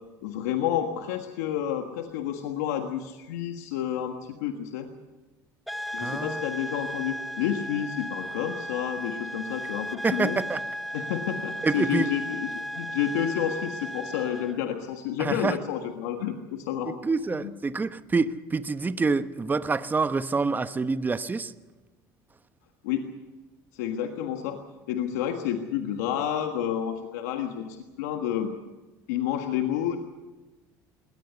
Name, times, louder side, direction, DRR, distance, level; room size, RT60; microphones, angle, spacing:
voice 1, 0.2-4.9 5.9-10.4 10.9-17.0 17.4-17.5 22.8-23.1 23.7-28.5 29.1-30.0, left 10 dB, 90° left, 5 dB, 1.6 m, -30 dB
sound 1, 5.7-14.6, equal, ahead, 1.1 m, -35 dB
voice 2, 6.0-6.4 10.0-10.6 11.6-12.1 15.2-15.6 16.9-21.5, right 4 dB, 20° right, 11 dB, 1.1 m, -27 dB
21.0 x 18.0 x 8.1 m, 1.2 s
supercardioid pair, 90°, 9 cm